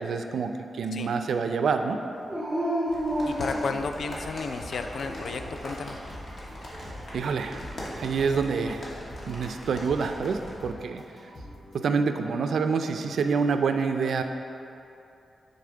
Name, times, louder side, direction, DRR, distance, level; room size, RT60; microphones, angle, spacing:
voice 1, 0.0-2.0 7.1-7.6 7.9-8.8 9.3-11.0 11.7-14.2, right 5 dB, 90° right, 7 dB, 0.4 m, -27 dB
Dog, 2.3-4.2 4.8-5.6 7.9-8.8, equal, 10° right, 1.6 m, -32 dB
sound 1, 2.9-10.5, equal, 45° left, 1.5 m, -41 dB
voice 2, 3.3-6.0, left 4 dB, 70° left, 6 dB, 0.4 m, -33 dB
sound 2, 4.1-11.9, equal, 30° left, 0.9 m, -47 dB
6.7 x 5.3 x 3.8 m, 2.8 s
wide cardioid pair, 115°, 0 cm